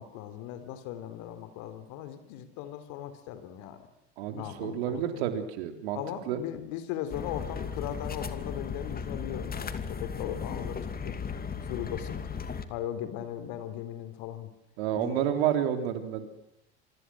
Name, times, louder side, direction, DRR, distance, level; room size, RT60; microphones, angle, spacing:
voice 1, 0.0-3.9 4.3-5.2 5.9-11.2 11.6-12.3 12.7-14.5 14.9-15.2, left 11 dB, 65° left, 11 dB, 3.7 m, -38 dB
voice 2, 4.2-6.0 6.3-6.4 14.8-16.3, right 10 dB, 70° right, 7 dB, 3.7 m, -30 dB
sound 1, 7.1-12.6, left 6 dB, 30° left, 2.7 m, -36 dB
27.0 x 24.5 x 6.3 m, 0.84 s
hypercardioid pair, 75°, 33 cm